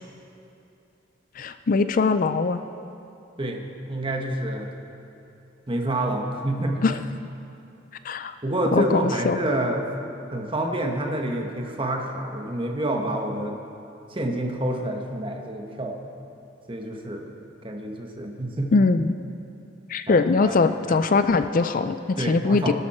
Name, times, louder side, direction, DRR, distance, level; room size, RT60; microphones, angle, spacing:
voice 1, 1.4-2.6 6.8-7.0 8.0-8.3 8.7-9.4 18.7-19.1 19.9-22.7, left 4 dB, 45° left, 10 dB, 0.4 m, -21 dB
voice 2, 3.4-4.7 5.7-6.8 8.4-9.9 10.3-13.6 14.1-16.0 16.7-17.3 17.6-18.7 20.1-20.6 20.9-21.0 22.2-22.7, right 1 dB, 25° right, 2 dB, 1.3 m, -28 dB
20.5 x 12.5 x 4.3 m, 2.8 s
head